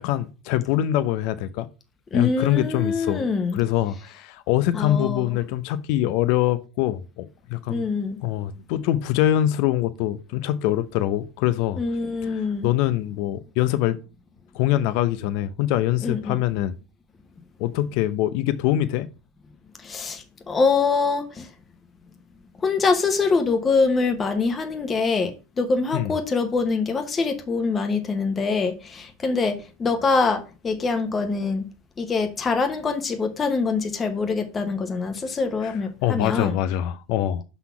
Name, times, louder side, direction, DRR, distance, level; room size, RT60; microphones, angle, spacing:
voice 1, 0.0-1.7 2.1-7.9 8.2-11.8 12.2-14.0 14.5-16.7 17.6-19.1 25.9-26.1 35.6-37.4, left 13 dB, 60° left, 0.5 m, -24 dB
voice 2, 2.1-3.6 4.7-5.3 7.7-8.2 11.8-12.7 16.0-16.4 19.8-21.5 22.6-31.6 32.0-36.5, left 4 dB, 20° left, 1.0 m, -24 dB
5.7 x 4.1 x 5.7 m
supercardioid pair, 115°, 0 cm